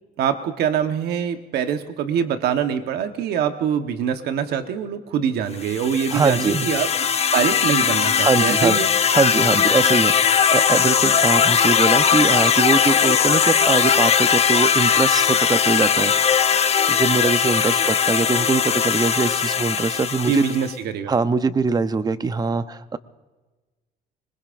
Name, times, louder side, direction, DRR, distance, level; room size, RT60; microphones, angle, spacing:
voice 1, 0.2-6.9 7.3-8.9 20.3-21.1, right 8 dB, 75° right, 7 dB, 1.2 m, -24 dB
sound 1, 5.6-20.7, left 7 dB, 40° left, 0.8 m, -19 dB
voice 2, 6.1-6.7 8.2-8.8 9.1-16.1 16.9-20.5 21.1-23.0, right 4 dB, 25° right, 12 dB, 0.7 m, -22 dB
Laughter, 11.4-19.7, left 8 dB, 55° left, 1.5 m, -38 dB
25.5 x 20.5 x 2.6 m, 1.2 s
cardioid pair, 110°, 17 cm